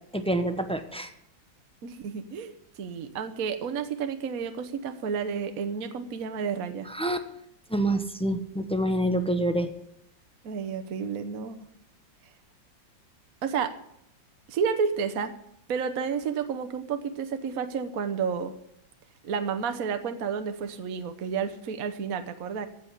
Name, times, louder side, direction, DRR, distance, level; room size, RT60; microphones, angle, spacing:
voice 1, 0.1-1.1 7.0-7.2 7.7-9.7, right 1 dB, 10° left, 8 dB, 0.3 m, -26 dB
voice 2, 1.8-2.5 2.8-6.9 10.4-11.6 13.4-13.7 14.5-15.3 15.7-18.5 19.2-22.7, right 6 dB, 55° right, 8 dB, 1.3 m, -31 dB
15.0 x 6.2 x 9.9 m, 0.76 s
omnidirectional pair, 2.0 m